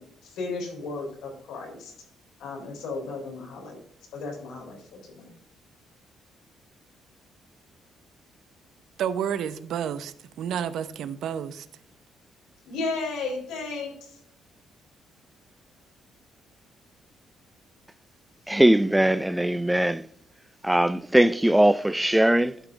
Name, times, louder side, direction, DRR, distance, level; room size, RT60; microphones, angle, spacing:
voice 1, 0.0-1.9 2.4-3.8 4.1-5.3 12.7-14.2, left 3 dB, 90° left, 3.8 m, -34 dB
voice 2, 9.0-11.7, right 8 dB, 65° right, 0.7 m, -30 dB
voice 3, 18.5-20.1 20.6-22.6, right 1 dB, 5° right, 0.3 m, -20 dB
11.0 x 6.1 x 3.6 m
cardioid pair, 145°, 0 cm